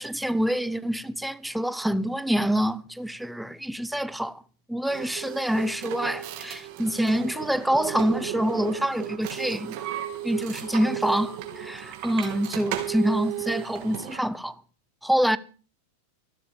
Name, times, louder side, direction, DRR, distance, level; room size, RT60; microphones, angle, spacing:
voice 1, 0.0-4.4 4.7-9.8 10.2-14.6 15.0-15.4, equal, ahead, 0.9 m, -26 dB
sound 1, 4.8-14.3, right 12 dB, 45° right, 3.2 m, -34 dB
15.5 x 12.5 x 4.9 m
figure-of-eight pair, 90°, 0 cm